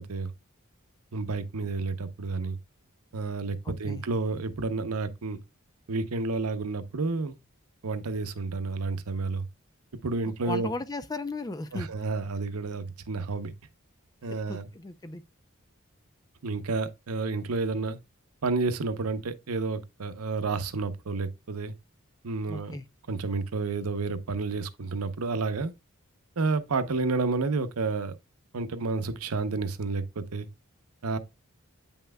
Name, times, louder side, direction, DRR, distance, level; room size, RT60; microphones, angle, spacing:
voice 1, 1.1-2.6 3.1-5.4 5.9-7.4 7.8-9.5 10.0-10.7 11.7-13.5 14.2-14.7 16.4-18.0 18.4-21.7 22.2-22.7 23.1-25.7 26.4-28.2 28.5-30.5 31.0-31.2, right 3 dB, 90° right, 0.8 m, -30 dB
voice 2, 3.6-4.1 10.4-11.9 14.3-15.2 22.5-22.8, left 2 dB, 15° left, 0.4 m, -36 dB
8.7 x 5.7 x 2.2 m
head